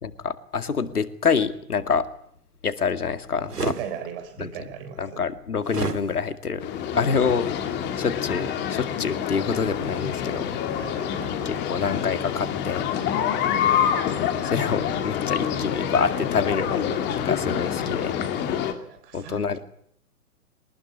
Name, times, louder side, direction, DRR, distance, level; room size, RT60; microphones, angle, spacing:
voice 1, 0.0-2.1 2.6-3.7 4.4-4.5 5.0-6.7 7.0-7.5 8.0-10.5 11.5-12.9 14.4-17.0 17.2-18.1 19.1-19.6, left 5 dB, 70° left, 10 dB, 2.3 m, -26 dB
sound 1, 3.5-3.8 5.7-6.0, right 4 dB, 80° right, 2.1 m, -28 dB
voice 2, 3.6-5.2 6.9-7.2 10.8-11.4 18.7-19.6, right 8 dB, 35° right, 11 dB, 4.0 m, -38 dB
sound 2, 6.6-18.7, left 9 dB, 20° left, 2.6 m, -27 dB
23.5 x 20.0 x 9.9 m, 0.68 s
figure-of-eight pair, 120°, 46 cm